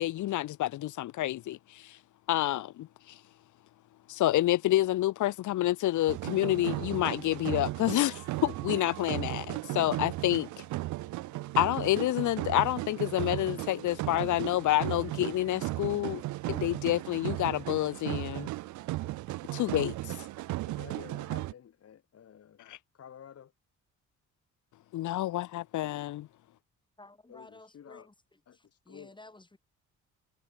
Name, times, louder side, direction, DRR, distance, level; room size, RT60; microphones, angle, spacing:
voice 1, 0.0-2.0 2.3-3.2 4.1-10.6 11.6-16.2 16.5-18.5 19.5-20.1 22.7-22.8 24.9-26.3, left 14 dB, 75° left, 1.1 m, -28 dB
sound 1, 6.1-21.5, right 18 dB, 75° right, 0.5 m, -36 dB
voice 2, 20.7-22.6 22.9-23.5 27.3-28.1 28.5-29.1, left 9 dB, 55° left, 2.4 m, -51 dB
voice 3, 27.0-29.6, left 2 dB, 15° left, 6.7 m, -54 dB
cardioid pair, 90°, 30 cm